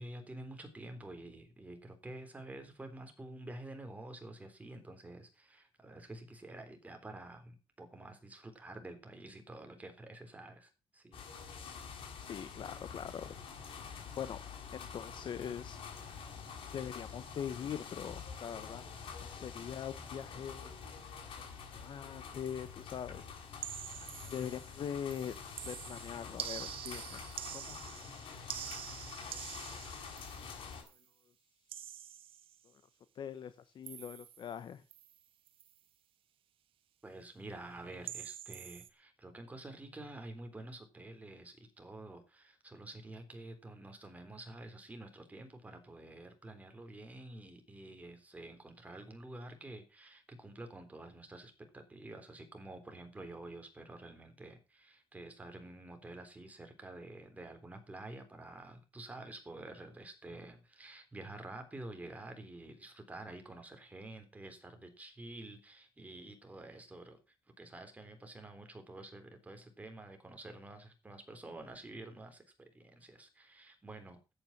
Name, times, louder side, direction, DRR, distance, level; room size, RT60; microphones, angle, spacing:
voice 1, 0.0-11.2 37.0-67.2 67.6-74.2, right 2 dB, 15° right, 6 dB, 3.7 m, -49 dB
sound 1, 11.1-30.8, left 6 dB, 85° left, 6.5 m, -47 dB
voice 2, 12.2-13.3 13.8-14.4 14.7-15.8 16.7-18.9 19.2-20.7 21.4-23.3 24.2-25.3 25.6-28.7 29.3-29.9 33.1-34.8, left 8 dB, 60° left, 12 dB, 1.0 m, -43 dB
sound 2, 23.6-24.8 25.1-31.0 31.7-32.6 33.9-34.6 34.9-35.2 35.5-35.7 38.1-38.9, right 10 dB, 85° right, 1.5 m, -46 dB
13.5 x 9.0 x 6.0 m, 0.31 s
cardioid pair, 120°, 9 cm